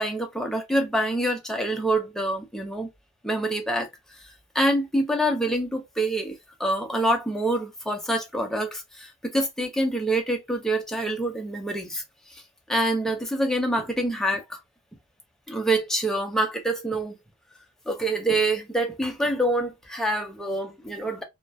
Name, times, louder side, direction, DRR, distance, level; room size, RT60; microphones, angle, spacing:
voice 1, 0.0-2.9 3.2-3.9 4.5-12.0 12.3-12.4 12.7-14.6 15.5-17.2 17.9-21.2, right 1 dB, ahead, 0.4 m, -26 dB
2.3 x 2.1 x 2.5 m
head